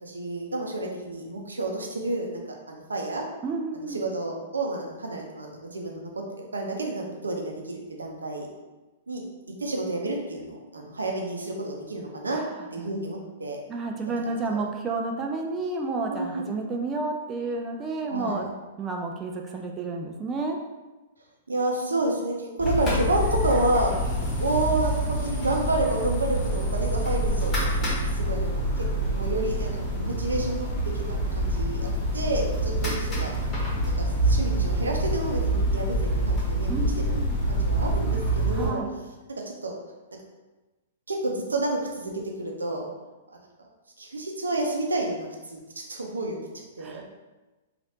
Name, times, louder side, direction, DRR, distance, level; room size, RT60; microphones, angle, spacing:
voice 1, 0.0-2.4 2.7-3.2 3.7-8.5 9.1-9.2 9.6-12.4 12.7-13.6 14.2-14.6 16.1-16.4 18.1-18.5 21.5-24.0 24.4-28.5 28.8-30.7 30.9-33.3 34.0-36.8 37.1-37.2 37.5-38.8 39.3-39.7 41.1-42.1 42.4-42.9 44.0-45.6 45.9-47.0, right 2 dB, 80° right, 1 dB, 0.5 m, -30 dB
voice 2, 3.4-4.0 12.3-12.4 12.8-12.9 13.7-18.5 18.8-20.6 36.7-37.4 38.5-38.9 46.8-47.0, right 3 dB, 20° right, 2 dB, 0.3 m, -31 dB
sound 1, 22.6-38.7, right 1 dB, 30° left, 1.2 m, -26 dB
sound 2, 22.8-28.1, equal, 55° left, 0.9 m, -44 dB
3.2 x 2.4 x 2.7 m, 1.2 s
figure-of-eight pair, 110°, 0 cm